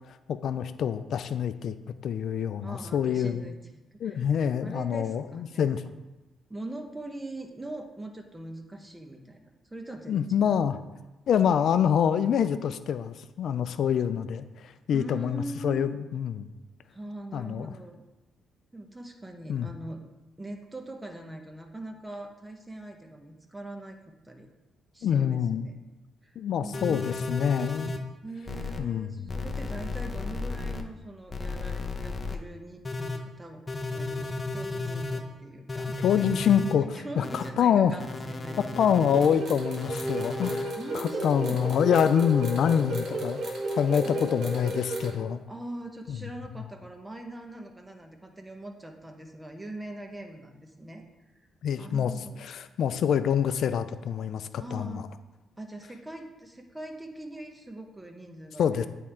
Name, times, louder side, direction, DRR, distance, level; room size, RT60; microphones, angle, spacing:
voice 1, 0.3-1.7 2.0-3.4 4.0-5.8 10.1-10.8 11.3-16.5 17.3-17.7 19.5-19.7 25.0-25.7 26.4-28.0 28.8-29.1 36.0-36.9 37.2-38.0 38.6-45.4 46.1-46.3 51.6-52.1 52.4-55.0 58.6-58.9, left 8 dB, 65° left, 12 dB, 0.4 m, -26 dB
voice 2, 2.6-3.6 3.9-4.2 4.6-5.7 6.5-10.5 14.9-15.9 16.9-18.0 18.7-20.1 20.4-24.0 24.2-24.5 24.9-25.8 26.2-26.4 26.6-27.0 28.2-36.0 36.9-38.9 40.8-41.7 44.0-44.3 45.5-51.0 51.8-52.4 54.6-55.1 55.6-58.8, right 1 dB, 15° right, 4 dB, 0.9 m, -42 dB
sound 1, 26.7-28.0 28.5-28.8 29.3-30.8 31.3-32.4 32.8-33.2 33.7-35.2 35.7-36.7 37.2-37.5 38.0-39.3 39.8-40.6 41.1-41.4 41.9-43.5 44.0-44.6, left 3 dB, 20° left, 0.7 m, -34 dB
sound 2, 39.1-45.1, right 1 dB, 65° right, 1.7 m, -33 dB
8.5 x 3.6 x 4.3 m, 1.1 s
cardioid pair, 90°, 0 cm